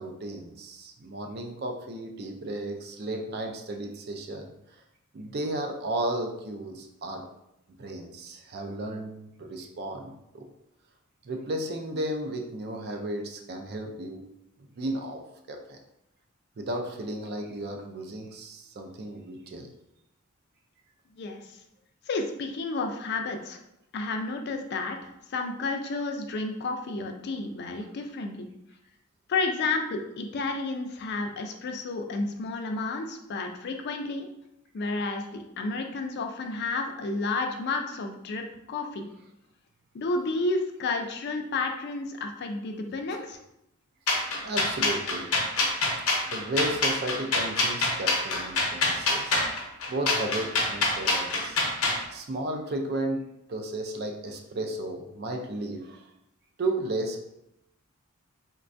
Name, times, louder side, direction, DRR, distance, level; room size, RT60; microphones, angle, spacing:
voice 1, 0.0-4.8 5.1-7.3 7.8-10.5 11.2-14.3 14.6-15.2 15.5-15.8 16.6-19.7 43.1-43.2 44.4-45.3 46.3-49.5 49.9-51.6 52.1-56.1 56.6-57.2, right 1 dB, 50° right, 4 dB, 0.4 m, -34 dB
voice 2, 21.1-21.6 22.1-23.6 23.9-28.5 29.3-34.3 34.7-39.1 39.9-43.4, left 3 dB, 50° left, 4 dB, 0.4 m, -31 dB
sound 1, 44.1-52.0, left 2 dB, 85° left, 0.7 m, -25 dB
4.0 x 2.2 x 2.5 m, 0.83 s
head